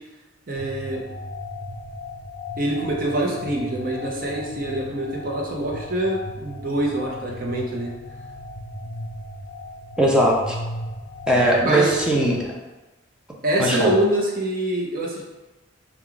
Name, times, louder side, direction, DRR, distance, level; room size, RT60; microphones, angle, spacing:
voice 1, 0.5-1.0 2.6-7.9 11.6-12.0 13.4-15.2, right 1 dB, 50° right, -2 dB, 0.8 m, -25 dB
sound 1, 0.6-12.5, left 2 dB, 65° left, 0.6 m, -36 dB
voice 2, 10.0-10.6 11.3-12.5 13.6-13.9, right 1 dB, 5° right, -2 dB, 0.6 m, -19 dB
4.6 x 2.4 x 3.8 m, 1.1 s
head